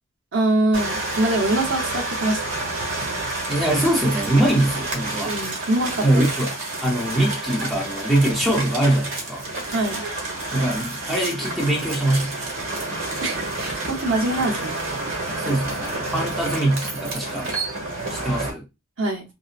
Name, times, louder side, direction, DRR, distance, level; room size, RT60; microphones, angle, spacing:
voice 1, 0.3-2.4 5.2-6.2 9.7-10.0 13.2-14.8 19.0-19.2, right 1 dB, 65° right, 0.9 m, -23 dB
sound 1, 0.7-18.5, right 2 dB, 85° right, 1.3 m, -29 dB
voice 2, 3.5-5.3 6.0-6.5 6.8-9.4 10.5-12.4 15.4-17.5 18.1-18.6, right 1 dB, ahead, 0.7 m, -22 dB
3.9 x 2.0 x 2.4 m
head